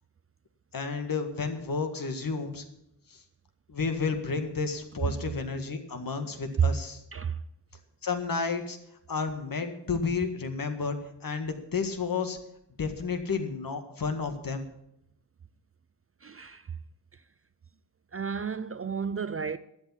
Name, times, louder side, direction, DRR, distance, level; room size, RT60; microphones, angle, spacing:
voice 1, 0.7-2.6 3.1-3.2 3.7-7.0 8.0-8.8 9.1-11.0 11.2-12.4 12.8-14.7, left 4 dB, 55° left, 1.8 m, -31 dB
voice 2, 7.1-7.4 16.2-16.7 17.1-17.2 18.1-19.6, right 7 dB, 35° right, 0.4 m, -30 dB
12.5 x 8.7 x 8.6 m
wide cardioid pair, 125°, 41 cm